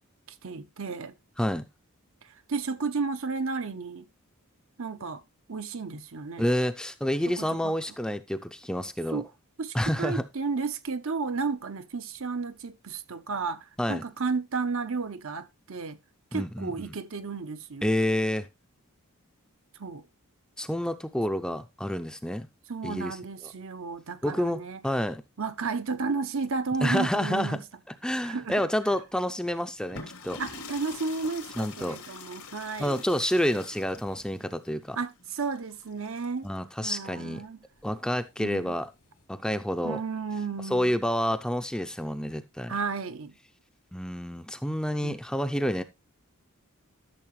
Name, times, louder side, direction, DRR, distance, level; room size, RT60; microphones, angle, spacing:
voice 1, 0.3-1.1 2.5-4.1 4.8-5.2 5.5-6.5 7.3-7.8 9.1-9.3 9.6-16.0 16.3-17.9 19.8-20.0 22.7-24.8 25.4-27.6 28.2-28.6 30.4-33.0 35.0-36.5 36.8-37.6 38.4-38.8 39.8-41.0 42.7-43.4 45.0-45.2, right 4 dB, 65° right, 0.8 m, -33 dB
voice 2, 6.4-9.2 9.7-10.2 13.8-14.0 16.3-16.9 17.8-18.5 20.6-22.5 22.8-23.2 24.2-25.2 26.8-30.4 31.6-32.0 32.8-35.0 36.4-37.4 37.8-38.9 39.3-40.0 40.7-42.8 43.9-45.8, equal, 5° left, 0.5 m, -29 dB
sound 1, 29.8-36.5 37.8-39.2, left 4 dB, 90° left, 2.8 m, -45 dB
12.5 x 6.7 x 3.1 m
head